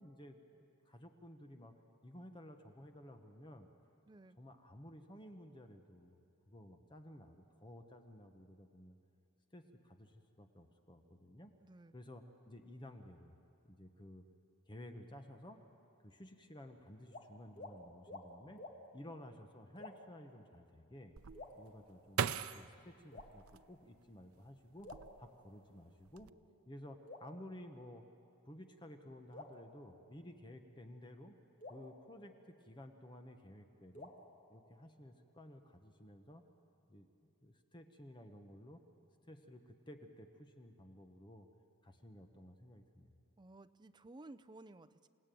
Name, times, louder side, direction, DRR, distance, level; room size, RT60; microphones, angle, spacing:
voice 1, 0.0-3.7 4.4-6.2 6.5-9.0 9.5-11.5 11.9-13.4 13.6-14.2 14.7-15.6 16.0-18.6 18.9-21.1 21.6-24.9 25.2-26.3 26.7-28.0 28.4-31.4 31.7-34.1 34.5-36.4 36.9-37.1 37.4-38.8 39.2-41.5 41.8-43.1, left 1 dB, 20° left, 5 dB, 1.1 m, -54 dB
voice 2, 4.1-4.4 11.6-12.0 43.4-45.1, right 2 dB, 20° right, 13 dB, 0.5 m, -56 dB
sound 1, 17.1-17.3 17.6-17.8 18.1-18.3 18.6-18.8 19.8-20.2 21.3-22.2 23.1-23.8 24.8-25.8 27.1-28.2 29.3-30.5 31.6-33.0 33.9-35.2, left 2 dB, 35° left, 2.0 m, -54 dB
sound 2, 21.2-24.2 24.8-25.5 25.8-26.3, right 7 dB, 85° right, 0.6 m, -41 dB
28.0 x 17.5 x 9.2 m, 2.6 s
head